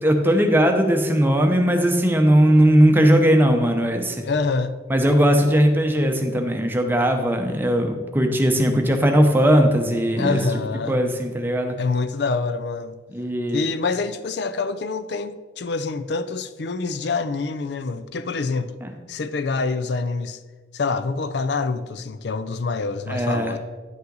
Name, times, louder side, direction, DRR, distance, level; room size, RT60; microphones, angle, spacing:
voice 1, 0.0-4.2 4.9-10.4 10.9-11.8 13.1-13.6 18.8-18.9 23.1-23.6, equal, 10° right, 0.8 m, -18 dB
voice 2, 4.2-4.8 10.2-11.1 11.8-12.9 13.5-18.7 19.1-20.4 20.7-23.6, left 4 dB, 65° left, 0.5 m, -26 dB
10.0 x 5.6 x 3.9 m
head